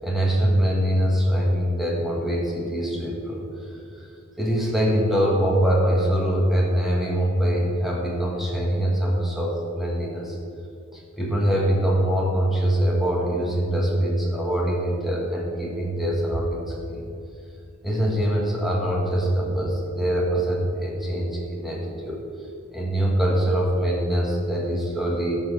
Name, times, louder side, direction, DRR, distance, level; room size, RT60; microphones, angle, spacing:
voice 1, 0.0-3.4 4.0-4.1 4.4-10.4 10.9-17.0 17.8-22.2 22.7-25.4, right 1 dB, ahead, -3 dB, 1.9 m, -23 dB
13.5 x 4.9 x 7.1 m, 2.4 s
head